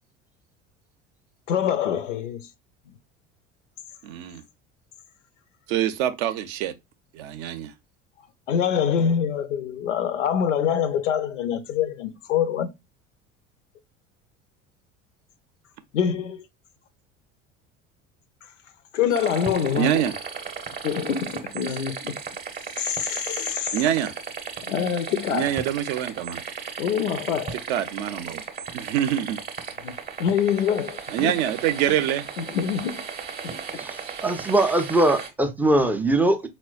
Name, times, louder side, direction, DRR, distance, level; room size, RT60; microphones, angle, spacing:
voice 1, 1.5-2.5 2.9-3.0 8.5-12.7 15.9-16.4 18.9-20.1 20.8-22.2 22.8-23.8 24.6-25.6 26.8-27.6 29.8-31.3 32.4-33.1 33.4-33.6, left 8 dB, 80° left, 0.5 m, -25 dB
voice 2, 4.0-4.4 5.7-6.7 7.1-7.7 19.8-20.1 23.7-24.1 25.3-26.4 27.7-28.4 28.7-29.4 31.1-32.3 34.0-34.2, right 11 dB, 60° right, 0.6 m, -25 dB
sound 1, 19.1-35.3, right 6 dB, 25° right, 0.7 m, -36 dB
voice 3, 33.7-36.5, right 1 dB, 5° right, 0.3 m, -21 dB
4.2 x 2.1 x 2.3 m
figure-of-eight pair, 65°, 37 cm